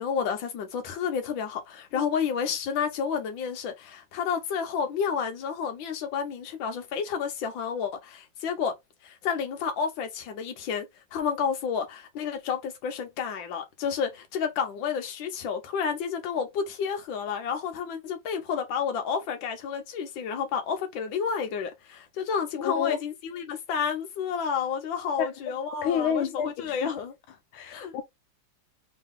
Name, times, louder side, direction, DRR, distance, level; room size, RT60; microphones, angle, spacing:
voice 1, 0.0-8.7 9.0-10.9 11.1-27.1 27.7-27.9, left 6 dB, 75° left, 1.6 m, -30 dB
voice 2, 22.6-23.0 25.2-25.3 25.8-26.9 27.5-28.0, left 8 dB, 90° left, 1.5 m, -29 dB
3.8 x 2.9 x 3.7 m
omnidirectional pair, 2.2 m